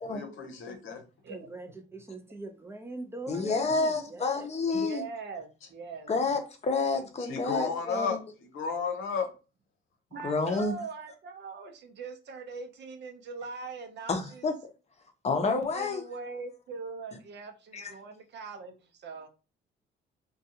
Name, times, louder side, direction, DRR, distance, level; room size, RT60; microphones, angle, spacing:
voice 1, 0.1-1.0 7.2-9.3, left 5 dB, 80° left, 0.7 m, -33 dB
voice 2, 1.3-4.5, right 2 dB, 10° right, 0.5 m, -42 dB
voice 3, 3.3-5.0 6.1-8.2 10.2-10.8 14.1-14.5 15.2-16.0 17.7-17.9, left 3 dB, 35° left, 0.6 m, -29 dB
voice 4, 4.7-6.1 10.1-14.5 15.4-19.3, right 4 dB, 60° right, 0.6 m, -41 dB
2.5 x 2.2 x 2.7 m
cardioid pair, 90°, 20 cm